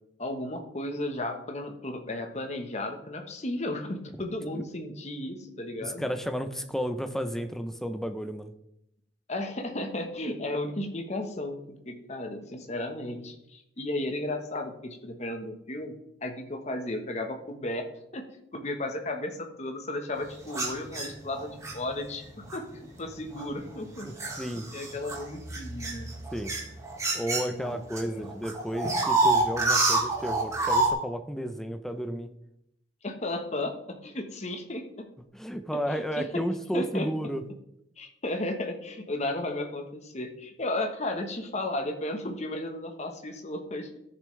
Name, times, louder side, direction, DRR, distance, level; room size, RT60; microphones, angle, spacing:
voice 1, 0.2-6.0 9.3-11.6 11.9-17.9 18.1-18.3 18.5-22.2 22.5-24.1 24.7-26.1 27.5-28.2 33.0-35.1 35.9-36.4 36.7-37.1 38.0-44.0, left 1 dB, 35° left, 5 dB, 1.1 m, -34 dB
voice 2, 5.8-8.5 24.0-24.7 26.3-26.5 27.1-32.3 35.3-37.4, equal, ahead, 7 dB, 0.6 m, -32 dB
sound 1, 20.5-21.7 22.5-22.7 23.4-28.0 28.3-30.9, right 2 dB, 15° right, 1.7 m, -27 dB
13.5 x 7.0 x 3.3 m, 0.81 s
head